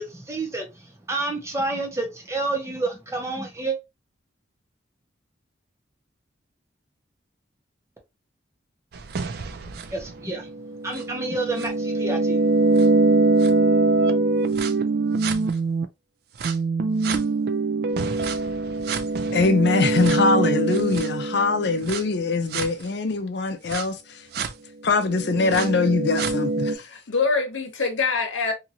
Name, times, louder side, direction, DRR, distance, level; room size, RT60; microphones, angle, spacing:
voice 1, 0.0-3.8 9.9-10.5 10.8-12.4, right 2 dB, 15° right, 0.7 m, -29 dB
sound 1, 8.9-15.8 16.4-22.0 22.5-22.7 23.7-23.8 24.3-24.5 25.0-26.8, right 3 dB, 55° right, 0.4 m, -23 dB
voice 2, 19.3-24.5 24.8-26.8, left 3 dB, 60° left, 0.5 m, -23 dB
voice 3, 26.8-28.5, left 4 dB, 85° left, 0.9 m, -24 dB
2.8 x 2.5 x 2.8 m
head